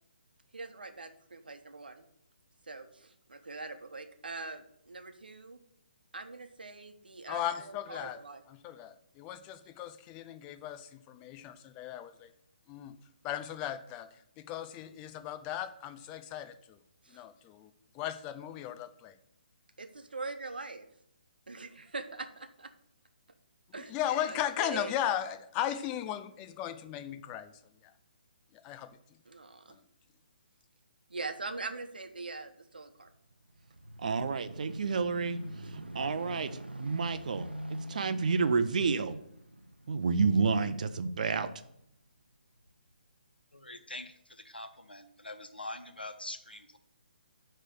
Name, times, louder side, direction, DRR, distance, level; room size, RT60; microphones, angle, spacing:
voice 1, 0.5-2.0 2.7-5.6 6.1-8.4 17.0-17.2 19.8-20.9 21.5-22.7 23.7-24.0 24.3-24.9 29.3-29.8 31.1-33.1, right 3 dB, 70° right, 7 dB, 1.0 m, -42 dB
voice 2, 7.3-8.2 8.5-12.3 12.7-13.0 13.2-14.1 14.4-16.8 17.1-19.1 23.9-27.5 27.8-27.9 28.5-28.9 29.7-29.8, left 11 dB, 20° left, 9 dB, 0.5 m, -36 dB
sound 1, 33.1-41.9 42.6-42.7, right 1 dB, 85° right, 0.7 m, -46 dB
voice 3, 34.0-35.4 35.7-37.5 37.9-39.2 39.9-41.5, right 4 dB, 50° right, 10 dB, 0.7 m, -29 dB
voice 4, 43.5-46.8, left 2 dB, 85° left, 7 dB, 1.1 m, -44 dB
9.8 x 3.4 x 6.7 m, 0.75 s
figure-of-eight pair, 135°, 5 cm